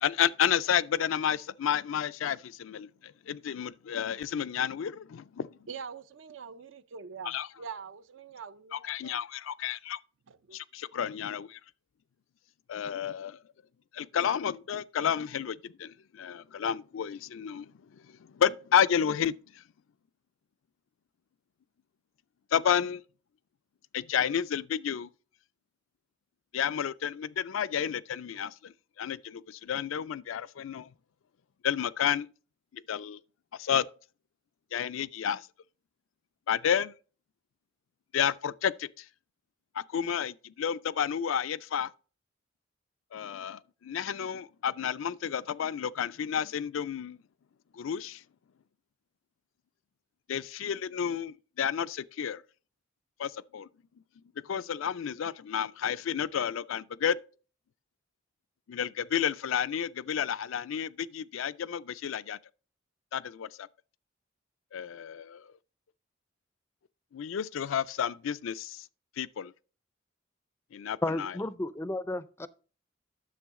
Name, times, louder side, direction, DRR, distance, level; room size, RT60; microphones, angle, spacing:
voice 1, 0.0-5.5 7.2-7.5 8.7-10.0 10.5-11.6 12.7-13.4 13.9-17.7 18.3-19.3 22.5-23.0 23.9-25.1 26.5-30.9 31.6-32.3 32.7-33.2 33.6-33.9 34.7-35.5 36.5-36.9 38.1-39.0 39.8-41.9 43.1-47.2 47.7-48.2 50.3-52.4 53.2-53.7 54.5-57.2 58.7-62.4 63.1-63.7 64.7-65.5 67.1-68.8 69.2-69.5 70.7-71.3, left 8 dB, 85° left, 0.4 m, -31 dB
voice 2, 5.7-9.2 10.3-10.6, right 6 dB, 75° right, 0.5 m, -44 dB
voice 3, 71.0-72.5, left 2 dB, 15° left, 0.4 m, -32 dB
10.0 x 6.9 x 3.6 m
head